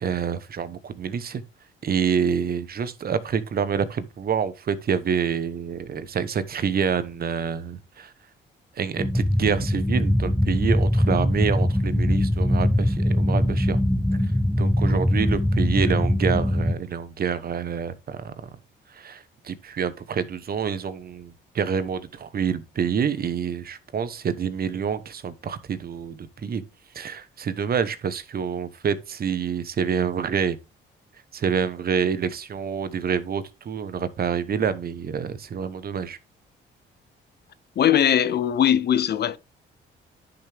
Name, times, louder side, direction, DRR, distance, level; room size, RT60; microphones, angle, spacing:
voice 1, 0.0-1.4 1.8-8.1 8.7-13.8 14.6-18.5 18.9-26.6 26.9-30.6 31.3-36.2, right 7 dB, 50° right, 1.1 m, -27 dB
sound 1, 9.0-16.7, left 1 dB, 5° left, 0.7 m, -22 dB
voice 2, 37.8-39.4, left 10 dB, 55° left, 0.7 m, -20 dB
10.5 x 6.0 x 3.5 m
cardioid pair, 90°, 20 cm